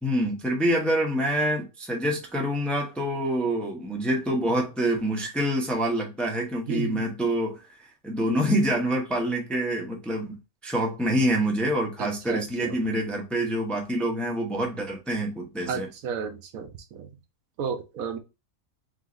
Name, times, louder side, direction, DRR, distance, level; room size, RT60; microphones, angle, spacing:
voice 1, 0.0-7.7 8.0-15.9, right 1 dB, ahead, 0.7 m, -26 dB
voice 2, 6.7-7.0 12.0-12.8 15.7-17.1 17.6-18.2, right 6 dB, 80° right, 1.2 m, -33 dB
3.9 x 2.9 x 3.8 m
omnidirectional pair, 1.5 m